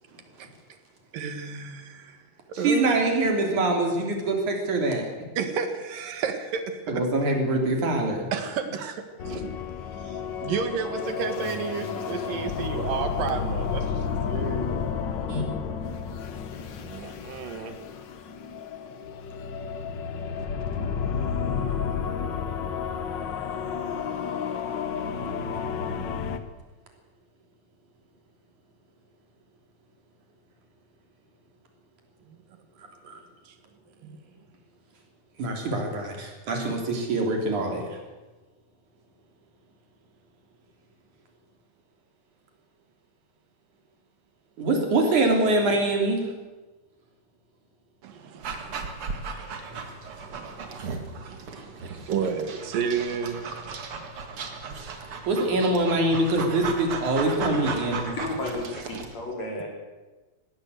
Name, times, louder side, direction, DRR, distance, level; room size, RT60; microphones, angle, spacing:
voice 1, 1.1-2.2 2.5-3.0 5.4-7.0 8.3-9.5 10.0-14.8 16.8-17.7 32.3-32.4 33.5-33.6 34.0-34.2 48.0-48.9 50.2-53.4 54.2-54.3, right 6 dB, 85° right, 8 dB, 3.4 m, -32 dB
voice 2, 2.6-5.1 6.9-8.3 15.3-15.4 33.1-33.2 35.4-38.0 44.6-46.2 55.3-58.2, right 2 dB, 65° right, 2 dB, 4.7 m, -24 dB
sound 1, 9.2-26.4, left 6 dB, 75° left, 1.0 m, -31 dB
Dog, 48.4-59.1, right 4 dB, 45° right, 2.5 m, -36 dB
voice 3, 58.1-59.7, left 2 dB, 55° left, 0 dB, 5.7 m, -33 dB
19.5 x 16.5 x 8.1 m, 1.2 s
omnidirectional pair, 3.8 m